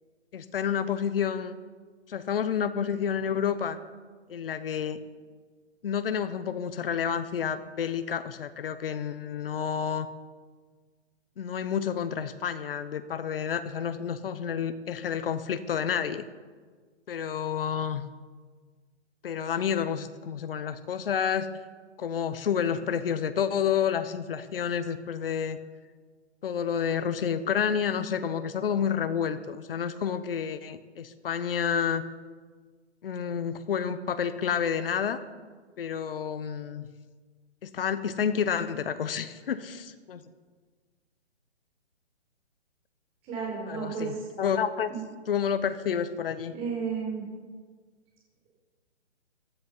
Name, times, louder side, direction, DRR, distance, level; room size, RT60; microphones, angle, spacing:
voice 1, 0.3-1.5 2.1-3.8 4.3-5.0 5.8-10.1 11.4-16.2 17.1-18.1 19.2-21.5 22.0-25.6 26.4-32.0 33.0-35.2 35.8-36.9 37.6-40.2 43.7-44.9 45.3-46.5, left 7 dB, 50° left, 12 dB, 1.0 m, -29 dB
voice 2, 43.2-44.3 44.9-45.0 46.5-47.2, right 6 dB, 15° right, -4 dB, 4.6 m, -33 dB
16.0 x 10.5 x 5.6 m, 1.5 s
hypercardioid pair, 160°, 35 cm